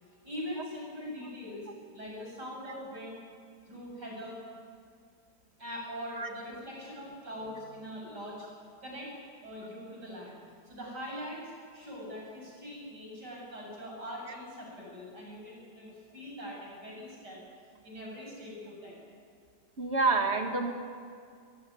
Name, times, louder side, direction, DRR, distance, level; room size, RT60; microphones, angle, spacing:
voice 1, 0.2-1.7 1.9-3.2 3.7-4.4 5.6-8.5 8.8-9.1 9.4-17.4 17.8-18.9, equal, 75° right, -2 dB, 8.8 m, -42 dB
voice 2, 19.8-20.7, right 3 dB, 40° right, 4 dB, 2.5 m, -27 dB
23.5 x 23.0 x 9.6 m, 2.2 s
omnidirectional pair, 1.9 m